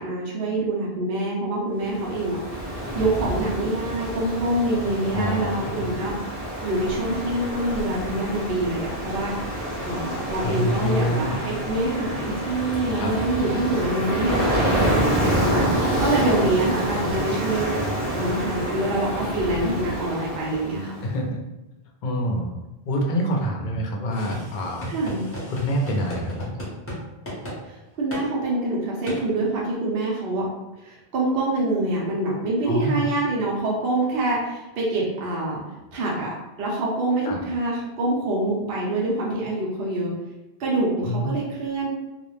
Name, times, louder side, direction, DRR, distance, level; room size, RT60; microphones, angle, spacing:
voice 1, 0.0-2.4 2.7-9.3 9.8-17.8 18.1-20.9 24.9-25.2 27.6-30.5 30.8-35.6 35.9-40.1 40.6-41.9, right 2 dB, 70° right, -4 dB, 0.8 m, -26 dB
Ocean, 1.8-21.0, right 1 dB, 40° right, 0.6 m, -27 dB
voice 2, 5.1-5.9 10.4-11.4 13.0-13.1 21.0-21.4 22.0-22.5 22.9-24.9 25.5-26.5 32.6-33.1 37.2-37.4 41.0-41.3, equal, 55° left, 0 dB, 0.6 m, -26 dB
sound 1, 6.8-16.1, equal, 90° right, 1.0 m, -41 dB
sound 2, 24.1-27.0 27.3-27.6 28.1-28.2 29.1-29.2, equal, 15° left, 0.7 m, -34 dB
2.4 x 2.0 x 3.0 m, 1.0 s
omnidirectional pair, 1.1 m